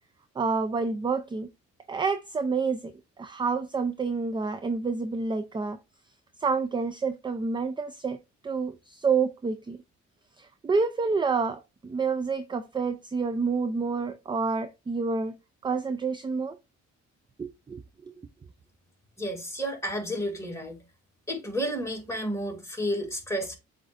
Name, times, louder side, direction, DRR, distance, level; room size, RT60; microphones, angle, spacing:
voice 1, 0.4-1.5 1.9-2.9 3.2-5.8 6.4-8.2 8.4-9.8 10.4-15.4 15.6-16.6 17.4-17.8, right 4 dB, 15° right, 0.4 m, -28 dB
voice 2, 19.2-20.8 21.3-23.6, equal, 10° left, 2.1 m, -31 dB
7.6 x 2.7 x 2.4 m
cardioid pair, 90°, 30 cm